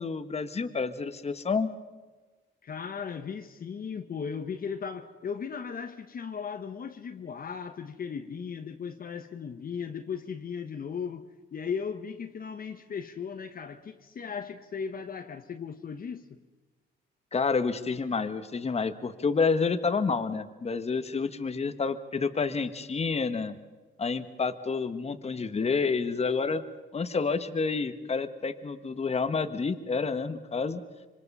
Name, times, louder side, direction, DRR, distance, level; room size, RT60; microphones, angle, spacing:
voice 1, 0.0-1.7 17.3-23.6 24.0-26.6 26.9-30.8, left 4 dB, 30° left, 1.4 m, -29 dB
voice 2, 2.6-16.4, left 6 dB, 45° left, 1.2 m, -37 dB
26.5 x 24.0 x 5.6 m
cardioid pair, 90°, 20 cm